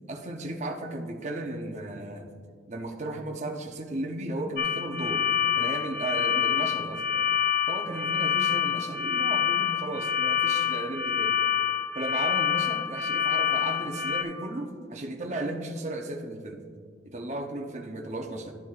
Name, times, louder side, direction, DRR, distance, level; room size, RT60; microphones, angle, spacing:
voice 1, 0.1-2.3 2.7-5.3 5.6-7.1 7.7-11.4 12.0-16.6 17.0-18.5, right 1 dB, 40° right, 3 dB, 0.7 m, -35 dB
sound 1, 4.6-14.2, left 8 dB, 50° left, 0.5 m, -26 dB
12.0 x 7.4 x 2.4 m, 2.1 s
head